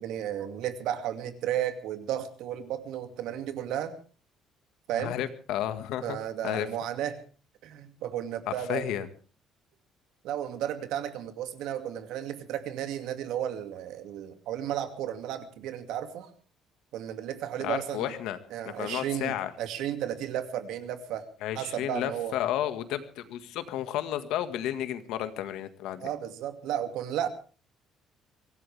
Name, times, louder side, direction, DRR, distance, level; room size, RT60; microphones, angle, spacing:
voice 1, 0.0-4.0 4.9-5.2 6.0-7.2 7.6-8.9 10.2-16.3 16.9-18.1 18.5-21.3 21.5-22.4 26.0-27.3, right 10 dB, 80° right, 8 dB, 2.4 m, -33 dB
voice 2, 5.0-6.2 6.4-6.7 8.5-9.1 17.6-18.4 18.6-19.5 21.4-26.1, left 12 dB, 80° left, 10 dB, 1.8 m, -32 dB
24.0 x 17.0 x 3.5 m, 0.36 s
cardioid pair, 175°, 0 cm